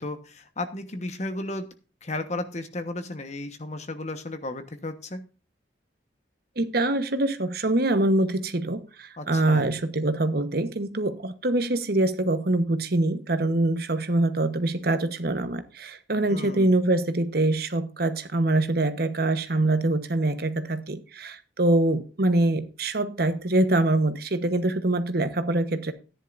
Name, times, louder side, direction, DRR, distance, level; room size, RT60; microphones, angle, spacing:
voice 1, 0.0-1.7 2.0-5.2 9.2-9.7 16.3-16.8, left 2 dB, 40° left, 1.2 m, -34 dB
voice 2, 6.6-25.9, right 2 dB, 55° right, 1.1 m, -24 dB
14.0 x 10.5 x 2.6 m
head